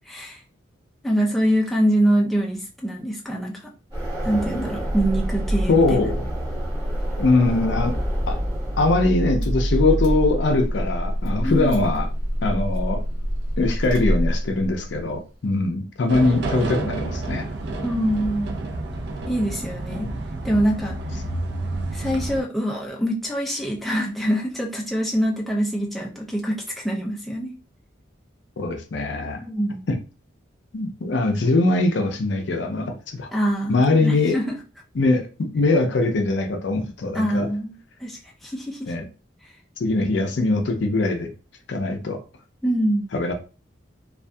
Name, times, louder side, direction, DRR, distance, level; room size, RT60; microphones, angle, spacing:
voice 1, 0.1-0.4 1.0-3.5 4.2-5.9 11.4-11.9 17.8-18.6 19.3-20.1 20.4-21.0 21.9-27.5 29.4-29.8 33.3-34.6 37.1-38.9 42.6-43.1, right 1 dB, ahead, 0.4 m, -24 dB
sound 1, 3.9-8.9, right 1 dB, 30° right, 1.4 m, -32 dB
Car / Engine starting, 4.8-14.9, equal, 85° right, 0.7 m, -26 dB
voice 2, 5.7-6.2 7.2-7.9 8.3-8.4 8.8-12.1 12.4-13.0 13.6-17.5 19.9-20.2 28.6-29.4 29.9-30.0 30.7-33.3 33.7-34.4 34.9-37.5 38.9-39.1 39.8-41.3 41.7-42.2 43.1-43.3, left 2 dB, 65° left, 0.5 m, -22 dB
sound 2, 16.1-22.4, right 2 dB, 60° right, 0.4 m, -30 dB
2.6 x 2.3 x 2.2 m
head